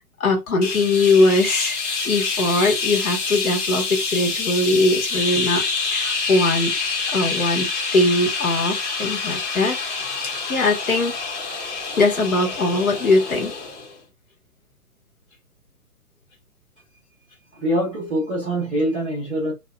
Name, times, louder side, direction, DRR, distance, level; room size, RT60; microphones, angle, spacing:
voice 1, 0.0-1.8 2.0-6.8 7.1-9.8 10.2-11.1 12.0-13.5, left 2 dB, 65° left, 1.3 m, -21 dB
sound 1, 0.6-14.0, left 4 dB, 50° left, 1.1 m, -27 dB
voice 2, 17.5-19.5, equal, 5° right, 0.4 m, -24 dB
2.7 x 2.5 x 2.2 m
figure-of-eight pair, 125°, 45 cm